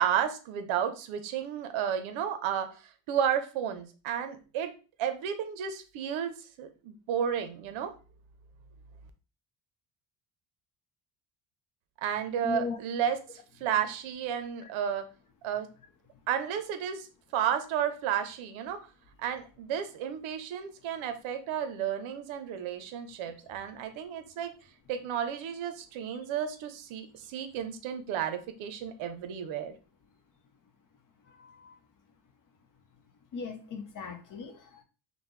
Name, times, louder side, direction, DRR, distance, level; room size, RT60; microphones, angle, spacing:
voice 1, 0.0-2.7 3.1-4.7 5.0-7.9 12.0-13.2 13.6-15.0 15.4-15.7 16.3-17.1 17.3-18.8 19.2-24.5 24.9-29.7, right 9 dB, 75° right, 8 dB, 0.8 m, -32 dB
voice 2, 12.4-12.8 31.2-31.8 33.3-34.8, left 5 dB, 45° left, 7 dB, 0.7 m, -38 dB
5.3 x 2.1 x 3.1 m, 0.35 s
cardioid pair, 140°, 47 cm